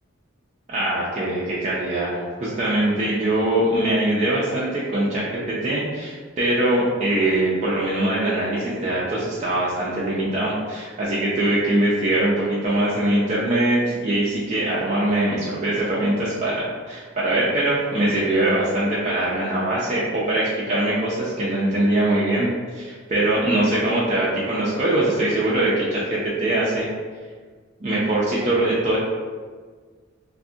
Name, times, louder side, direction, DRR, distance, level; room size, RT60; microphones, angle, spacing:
voice 1, 0.7-26.9 27.8-29.0, right 1 dB, 35° right, -7 dB, 0.4 m, -22 dB
2.5 x 2.4 x 2.6 m, 1.5 s
head